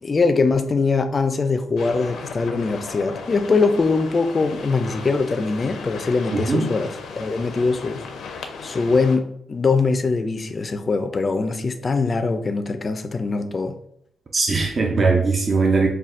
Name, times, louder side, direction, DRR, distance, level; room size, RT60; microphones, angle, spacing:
voice 1, 0.0-8.0 8.6-13.8, left 4 dB, 30° left, 8 dB, 0.4 m, -22 dB
sound 1, 1.8-9.2, left 5 dB, 85° left, 0.5 m, -36 dB
voice 2, 6.3-6.7 14.3-15.9, right 4 dB, 35° right, 1 dB, 0.5 m, -20 dB
5.6 x 2.2 x 2.5 m, 0.69 s
cardioid pair, 115°, 0 cm